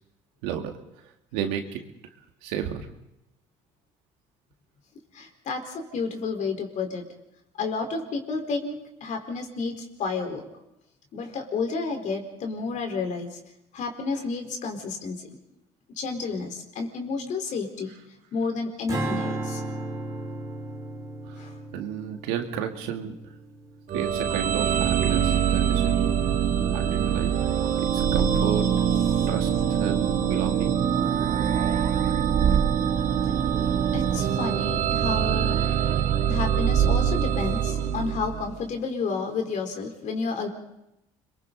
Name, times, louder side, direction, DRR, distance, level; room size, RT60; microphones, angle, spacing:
voice 1, 1.3-1.8 2.4-2.9 21.3-21.4 21.7-23.1 23.9-26.1 26.7-27.4 27.9-28.7 29.3-29.5 29.8-30.8, right 9 dB, 85° right, 4 dB, 2.2 m, -32 dB
voice 2, 5.1-7.1 7.6-10.5 11.1-13.4 13.7-15.4 16.0-17.9 18.3-19.6 21.4-21.5 29.1-29.3 33.9-35.6 36.3-40.5, left 4 dB, 60° left, 3 dB, 4.3 m, -31 dB
Strum, 18.9-25.3, right 2 dB, 20° right, 4.7 m, -35 dB
sound 1, 23.9-38.6, right 8 dB, 60° right, 1.9 m, -24 dB
29.5 x 22.5 x 4.1 m, 0.86 s
supercardioid pair, 85°, 14 cm